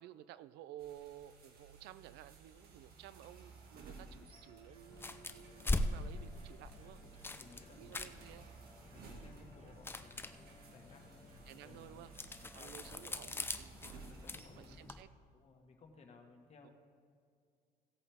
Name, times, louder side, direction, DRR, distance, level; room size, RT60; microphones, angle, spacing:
voice 1, 0.0-7.0 7.7-8.5 11.5-12.1 12.5-14.0 14.3-15.1 16.6-16.7, right 13 dB, 80° right, 16 dB, 0.4 m, -54 dB
sound 1, 0.8-14.8, right 3 dB, 65° right, 2.1 m, -57 dB
sound 2, 4.3-13.3, right 2 dB, 45° right, 1.7 m, -65 dB
sound 3, 4.9-15.0, left 2 dB, 15° left, 0.5 m, -43 dB
voice 2, 7.0-8.2 8.9-12.0 12.3-13.4 13.7-16.7, left 3 dB, 40° left, 2 dB, 1.6 m, -61 dB
17.0 x 8.4 x 3.6 m, 2.3 s
cardioid pair, 110°, 17 cm